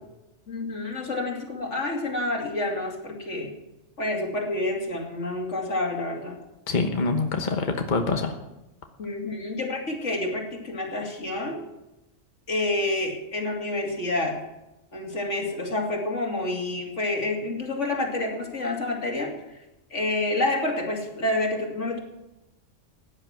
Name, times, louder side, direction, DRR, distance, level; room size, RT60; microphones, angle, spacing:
voice 1, 0.5-3.5 4.0-6.4 9.0-11.6 12.5-14.4 14.9-19.3 19.9-22.0, left 2 dB, 80° left, 0 dB, 3.0 m, -28 dB
voice 2, 6.7-8.4, left 3 dB, 40° left, 4 dB, 1.3 m, -25 dB
16.0 x 10.0 x 6.1 m, 0.95 s
omnidirectional pair, 1.2 m